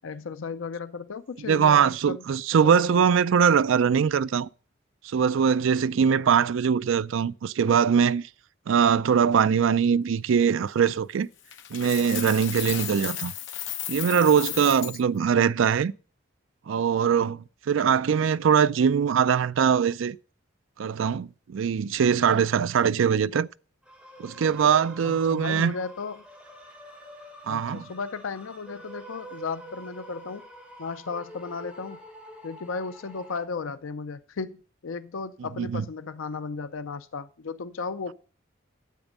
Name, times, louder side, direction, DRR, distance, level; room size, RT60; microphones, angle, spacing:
voice 1, 0.0-2.2 2.6-3.0 25.0-26.2 27.5-30.4 30.8-32.0 32.4-38.1, left 4 dB, 85° left, 0.5 m, -35 dB
voice 2, 1.4-4.5 5.0-8.2 8.7-11.3 11.7-13.3 13.9-15.9 16.7-20.2 20.8-23.5 24.2-25.7 27.5-27.8 35.6-35.9, right 7 dB, 75° right, 0.4 m, -22 dB
Coin (dropping), 11.5-15.0, left 11 dB, 65° left, 0.9 m, -34 dB
sound 1, 23.8-33.4, right 1 dB, 5° right, 3.3 m, -46 dB
9.1 x 8.1 x 5.3 m
head